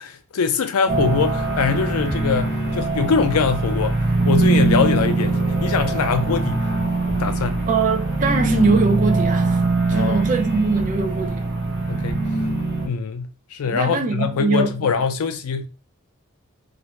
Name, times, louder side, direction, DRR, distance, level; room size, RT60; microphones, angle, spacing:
voice 1, 0.0-4.0 4.2-6.7 7.2-7.6 9.9-10.3 10.6-10.7 11.9-12.3 12.8-15.7, left 5 dB, 80° left, 0.4 m, -23 dB
sound 1, 0.9-12.9, right 2 dB, 50° right, 0.8 m, -22 dB
voice 2, 7.7-9.6 9.9-11.4 13.7-14.9, right 4 dB, 35° right, 0.3 m, -22 dB
2.5 x 2.1 x 2.9 m
head